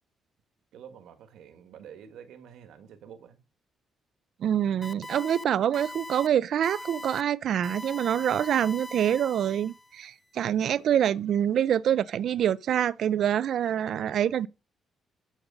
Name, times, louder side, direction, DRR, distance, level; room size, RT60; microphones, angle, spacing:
voice 1, 0.7-3.4, right 8 dB, 85° right, 1.6 m, -48 dB
voice 2, 4.4-14.5, right 10 dB, 65° right, 0.5 m, -26 dB
sound 1, 4.8-5.4 5.7-6.3 6.6-7.2 7.6-10.0, left 1 dB, 15° left, 0.5 m, -41 dB
13.0 x 5.4 x 5.4 m
cardioid pair, 110°, 0 cm